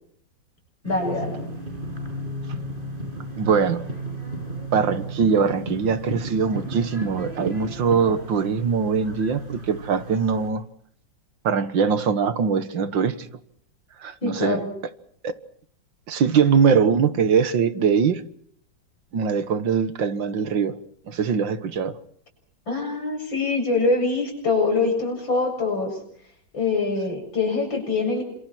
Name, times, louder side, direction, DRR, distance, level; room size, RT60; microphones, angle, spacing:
voice 1, 0.8-1.4 14.2-14.7 22.7-26.0 26.5-28.2, left 3 dB, 85° left, 8.2 m, -24 dB
sound 1, 0.8-10.5, right 1 dB, 25° right, 7.7 m, -34 dB
voice 2, 3.4-3.9 4.7-10.6 11.4-13.2 14.0-14.6 15.2-15.3 16.1-18.2 19.1-20.8 21.1-22.0, right 6 dB, 75° right, 2.2 m, -22 dB
30.0 x 27.0 x 4.5 m
omnidirectional pair, 2.0 m